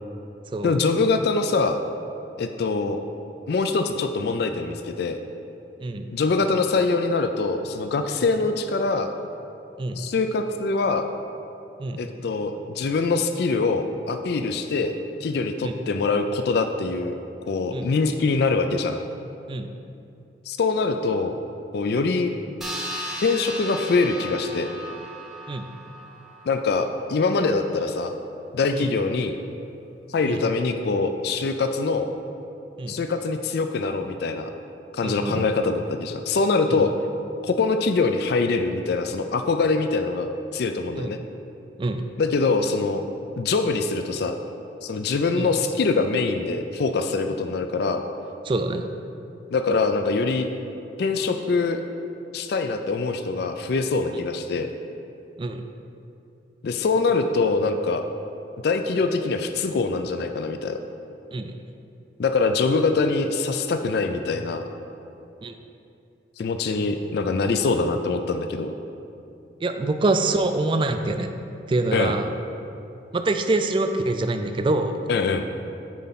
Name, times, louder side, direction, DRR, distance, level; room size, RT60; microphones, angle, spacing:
voice 1, 0.6-1.8 2.4-3.0 3.5-5.2 6.1-9.1 10.0-11.0 12.0-15.0 15.2-17.1 17.5-19.0 20.5-21.3 21.7-22.3 23.2-24.7 26.5-28.1 28.5-29.4 30.1-32.1 32.9-34.5 34.9-36.9 37.4-41.2 42.2-43.0 43.4-44.4 44.8-48.0 49.5-50.5 51.0-51.8 52.3-54.7 56.6-58.0 58.6-60.8 62.2-64.6 66.4-68.7 71.9-72.2 75.1-75.5, left 4 dB, 60° left, 7 dB, 0.4 m, -24 dB
sound 1, 22.6-27.5, equal, ahead, 0.8 m, -36 dB
voice 2, 35.0-35.5 36.7-36.9 41.0-41.1 41.8-42.0 45.4-45.5 48.4-48.9 54.1-54.2 55.4-55.6 61.3-61.5 65.4-65.5 69.6-71.3 71.7-72.3 73.1-75.0, right 2 dB, 25° right, 7 dB, 0.3 m, -25 dB
9.1 x 4.2 x 4.1 m, 2.6 s
head